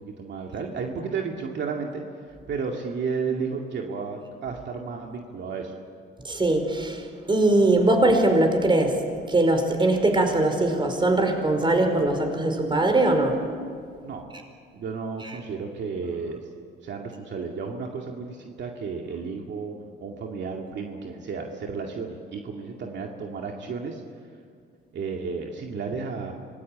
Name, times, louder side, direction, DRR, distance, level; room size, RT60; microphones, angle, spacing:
voice 1, 0.0-2.0 2.5-5.7 14.0-14.3 14.7-16.4 16.8-19.7 20.0-24.0 24.9-26.3, right 5 dB, 65° right, 1 dB, 2.3 m, -32 dB
voice 2, 6.2-9.0 9.3-13.4 15.2-15.3, right 2 dB, 25° right, 5 dB, 5.0 m, -21 dB
25.5 x 19.0 x 8.8 m, 2.2 s
cardioid pair, 90°, 20 cm